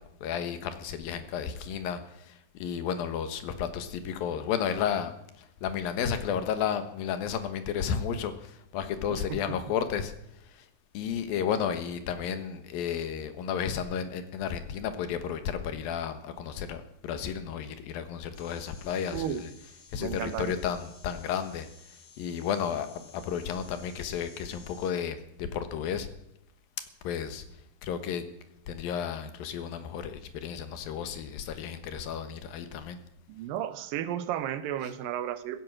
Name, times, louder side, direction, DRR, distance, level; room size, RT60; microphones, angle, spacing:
voice 1, 0.0-5.1 5.4-10.1 10.5-10.7 10.9-21.7 22.2-26.1 27.0-27.4 27.8-28.2 28.7-33.0, left 8 dB, 90° left, 9 dB, 3.1 m, -33 dB
sound 1, 18.3-24.9, left 4 dB, 40° left, 2.7 m, -55 dB
voice 2, 19.1-19.4 20.0-20.5 33.3-35.6, right 11 dB, 80° right, 12 dB, 2.7 m, -33 dB
15.5 x 11.0 x 7.7 m, 0.79 s
omnidirectional pair, 4.0 m